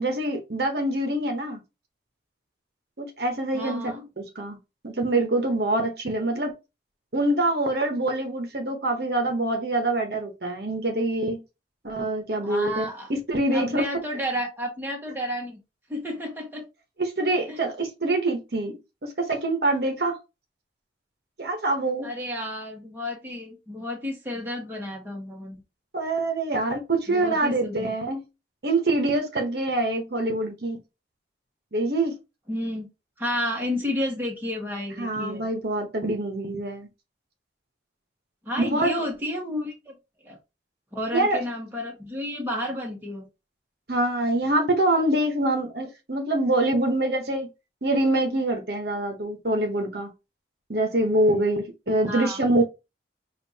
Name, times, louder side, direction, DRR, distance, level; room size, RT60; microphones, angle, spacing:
voice 1, 0.0-1.6 3.0-4.6 4.8-6.5 7.1-11.4 11.8-12.8 13.1-13.8 17.0-20.2 21.4-22.1 25.9-28.2 28.6-30.8 31.7-32.2 35.0-36.9 38.6-39.0 41.1-41.4 43.9-47.5 47.8-50.1 50.7-52.6, right 2 dB, 55° right, 1.0 m, -25 dB
voice 2, 3.5-4.0 12.4-13.1 13.5-15.6 15.9-16.6 17.5-17.6 22.0-25.6 27.1-27.9 32.5-32.9 33.2-35.5 38.4-39.9 40.2-40.4 40.9-43.3 52.0-52.4, left 1 dB, 10° right, 1.3 m, -31 dB
6.6 x 2.5 x 2.8 m
head